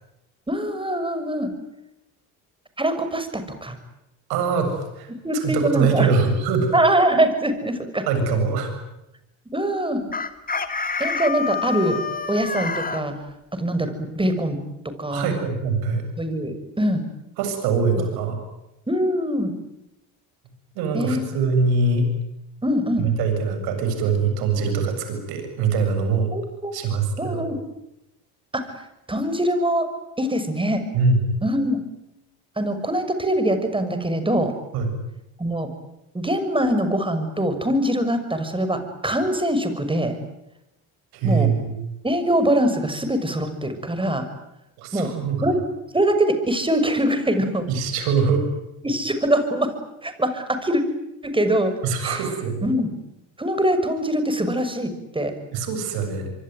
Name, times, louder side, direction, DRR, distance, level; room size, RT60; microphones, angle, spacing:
voice 1, 0.5-1.5 2.8-3.8 5.2-6.1 6.7-8.1 9.5-10.0 11.0-12.0 12.3-13.1 13.5-14.6 14.8-15.3 16.2-17.0 17.9-18.0 18.9-19.6 20.9-21.4 22.6-23.1 26.3-26.7 27.2-27.6 28.5-28.7 29.1-29.9 30.2-30.8 31.4-31.8 32.6-34.5 35.4-35.7 36.1-40.2 41.2-41.5 42.0-44.3 44.9-45.1 45.4-45.6 45.9-47.7 48.8-49.7 50.0-50.8 51.2-51.7 52.0-52.2 52.6-52.9 53.4-55.3, right 1 dB, 15° right, 9 dB, 6.5 m, -23 dB
voice 2, 4.3-5.1 5.4-6.7 8.1-8.7 15.1-16.0 17.4-18.4 20.8-22.1 23.0-26.3 26.7-27.5 30.9-31.2 34.7-34.9 41.1-41.7 44.8-45.5 47.7-48.4 51.8-52.7 55.5-56.3, right 4 dB, 75° right, 6 dB, 7.7 m, -23 dB
Chicken rooster, 10.1-13.0, left 5 dB, 25° left, 2.5 m, -27 dB
25.5 x 24.0 x 9.4 m, 0.89 s
supercardioid pair, 75°, 37 cm